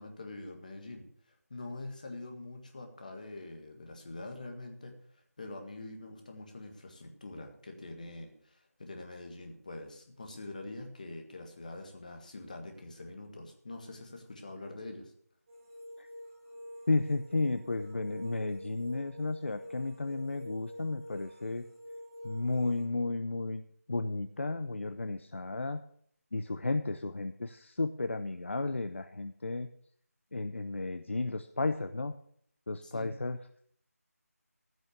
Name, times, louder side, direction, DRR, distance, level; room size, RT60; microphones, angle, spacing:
voice 1, 0.0-15.1 32.8-33.1, left 2 dB, 30° left, 3 dB, 1.7 m, -45 dB
sound 1, 15.5-22.8, left 1 dB, 15° right, 2.8 m, -47 dB
voice 2, 16.9-21.6 22.2-23.6 23.9-25.8 26.3-29.7 30.3-32.2 32.7-33.4, left 3 dB, 50° left, 9 dB, 0.6 m, -33 dB
15.5 x 6.3 x 6.8 m, 0.63 s
figure-of-eight pair, 175°, 9 cm